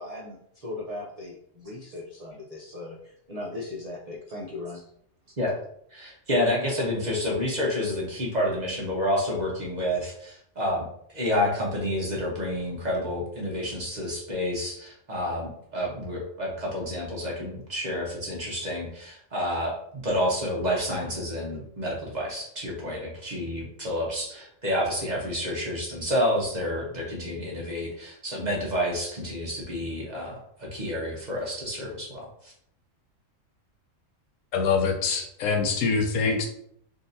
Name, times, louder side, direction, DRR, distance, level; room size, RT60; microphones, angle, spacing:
voice 1, 0.0-3.0 3.3-4.8, left 2 dB, 60° right, -3 dB, 0.4 m, -38 dB
voice 2, 5.9-10.8 11.1-19.8 20.0-32.5, left 1 dB, 40° right, -3 dB, 0.8 m, -29 dB
voice 3, 34.5-36.5, left 5 dB, 75° left, 3 dB, 1.0 m, -24 dB
3.8 x 2.5 x 2.6 m, 0.70 s
omnidirectional pair, 1.4 m